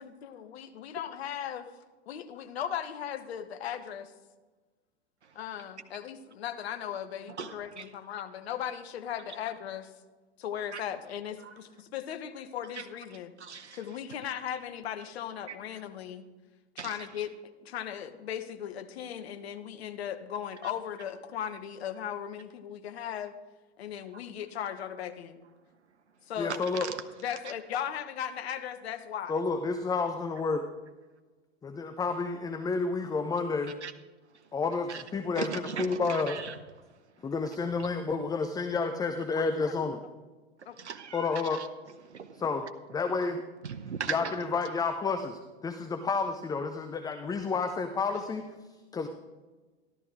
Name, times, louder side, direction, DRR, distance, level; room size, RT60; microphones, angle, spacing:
voice 1, 0.0-1.7 2.1-4.1 5.3-9.9 10.4-13.3 13.7-16.3 16.7-17.3 17.6-23.3 23.8-25.4 26.3-26.6 27.2-29.4 39.4-40.0 40.7-40.8, left 9 dB, 65° left, 9 dB, 1.1 m, -37 dB
voice 2, 7.4-7.8 10.7-10.8 13.4-13.8 16.8-16.9 26.7-26.9 33.8-33.9 34.9-35.0 35.4-36.5 40.8-41.3 42.1-42.3 43.6-44.2, right 6 dB, 85° right, 7 dB, 0.9 m, -37 dB
voice 3, 26.4-26.9 29.3-30.6 31.6-33.7 34.5-36.4 37.2-40.0 41.1-41.6 42.3-43.4 44.1-48.5 48.9-49.1, left 4 dB, 10° left, 7 dB, 0.6 m, -30 dB
13.0 x 12.0 x 3.6 m, 1.3 s
figure-of-eight pair, 95°, 34 cm